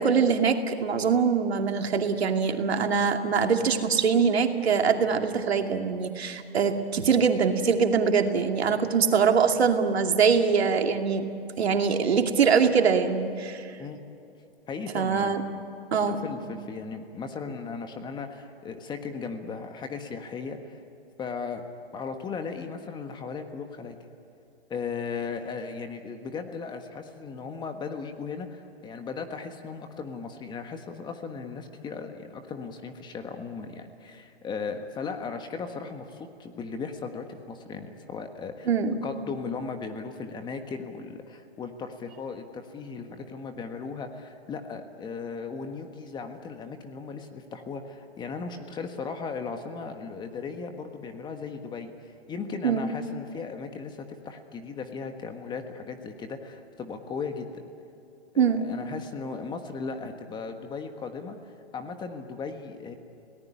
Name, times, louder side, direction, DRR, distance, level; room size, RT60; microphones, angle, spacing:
voice 1, 0.0-11.2 11.6-13.6 14.9-15.4 15.9-16.2 38.7-38.9 52.6-52.9 58.4-58.6, right 6 dB, 80° right, 4 dB, 2.5 m, -23 dB
voice 2, 14.7-15.4 16.1-20.8 21.2-21.6 21.9-24.0 24.7-38.7 39.0-57.6 58.3-63.0, left 5 dB, 15° left, 6 dB, 1.4 m, -37 dB
29.0 x 18.5 x 9.8 m, 2.6 s
hypercardioid pair, 140°, 32 cm